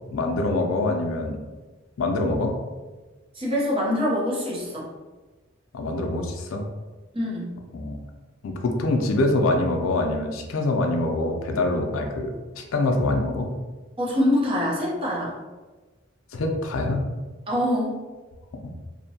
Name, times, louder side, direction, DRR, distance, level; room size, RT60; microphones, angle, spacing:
voice 1, 0.1-1.4 2.0-2.5 5.7-6.6 7.7-8.0 8.4-13.5 16.3-17.0 18.6-18.7, left 2 dB, 85° left, 3 dB, 0.4 m, -25 dB
voice 2, 3.3-4.9 7.1-7.5 14.0-15.3 17.5-18.0, left 1 dB, 25° right, -5 dB, 0.6 m, -24 dB
2.7 x 2.1 x 2.7 m, 1.3 s
head